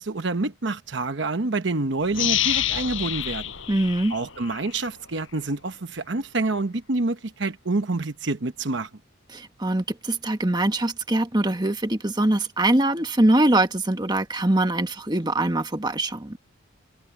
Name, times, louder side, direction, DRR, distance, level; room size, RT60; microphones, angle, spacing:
voice 1, 0.0-3.4 4.1-8.9, right 2 dB, 60° right, 1.0 m, -27 dB
sound 1, 2.1-4.8 5.3-5.4, left 12 dB, 75° left, 6.1 m, -27 dB
voice 2, 3.7-4.1 9.3-16.4, right 1 dB, 20° right, 1.4 m, -23 dB
head